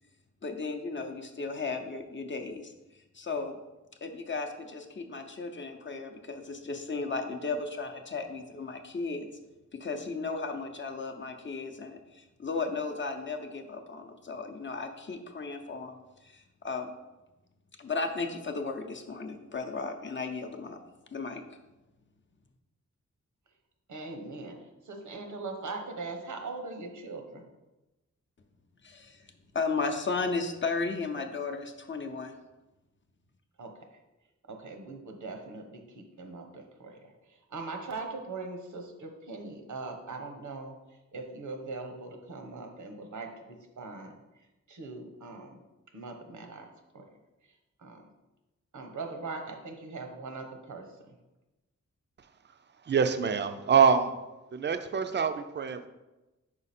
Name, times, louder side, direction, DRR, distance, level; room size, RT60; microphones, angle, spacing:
voice 1, 0.4-3.6 4.0-9.3 9.8-16.0 16.2-16.9 17.8-20.8 21.1-21.4 28.8-29.3 29.5-32.4, left 4 dB, 40° left, 4 dB, 0.6 m, -35 dB
voice 2, 23.9-27.5 33.6-34.0 34.5-44.1 44.7-45.6 45.9-46.7 46.9-47.0 47.8-48.0 48.7-51.1, right 3 dB, 90° right, 3 dB, 1.0 m, -41 dB
voice 3, 52.9-54.2 54.5-55.9, right 6 dB, 40° right, 9 dB, 0.4 m, -25 dB
4.9 x 4.8 x 4.2 m, 1.0 s
wide cardioid pair, 115°, 30 cm